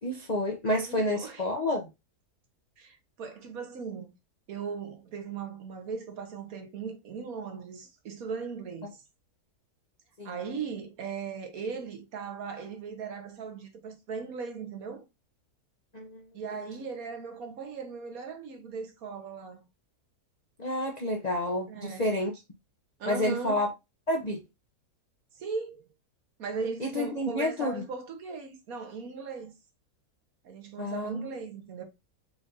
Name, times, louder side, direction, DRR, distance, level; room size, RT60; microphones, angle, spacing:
voice 1, 0.0-1.9 10.2-10.4 15.9-16.2 20.6-22.3 23.1-23.7 24.1-24.4 26.8-27.8 30.8-31.3, left 1 dB, 45° left, 0.5 m, -29 dB
voice 2, 0.8-1.4 2.8-4.1 4.5-9.0 10.2-15.1 16.3-19.7 21.7-22.0 23.0-23.7 25.3-25.9 26.4-29.5 30.4-31.8, right 5 dB, 65° right, 1.4 m, -38 dB
5.0 x 2.5 x 3.7 m
omnidirectional pair, 1.7 m